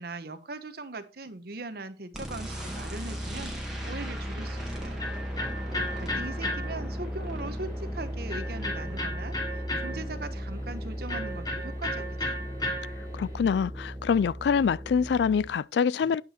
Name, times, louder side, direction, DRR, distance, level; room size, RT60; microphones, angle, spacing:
voice 1, 0.0-3.5 3.8-5.1 5.7-12.4, right 3 dB, 60° right, 1.0 m, -40 dB
sound 1, 2.1-15.5, equal, 5° right, 2.2 m, -36 dB
Electric guitar, 4.3-13.3, left 1 dB, 25° left, 2.7 m, -36 dB
voice 2, 13.1-16.2, left 6 dB, 70° left, 0.3 m, -25 dB
9.4 x 5.7 x 4.2 m
head